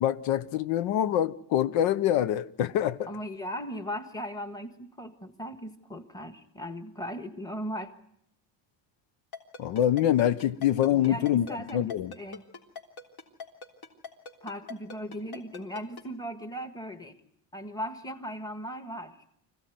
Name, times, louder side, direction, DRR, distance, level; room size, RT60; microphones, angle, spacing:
voice 1, 0.0-3.1 9.6-11.5 11.7-12.1, left 11 dB, 85° left, 0.9 m, -25 dB
voice 2, 3.1-7.9 10.9-12.4 14.4-17.2 17.5-19.2, equal, 10° left, 1.5 m, -38 dB
Ringtone, 9.3-16.0, left 5 dB, 55° left, 3.5 m, -41 dB
25.5 x 16.0 x 9.3 m
cardioid pair, 145°, 45 cm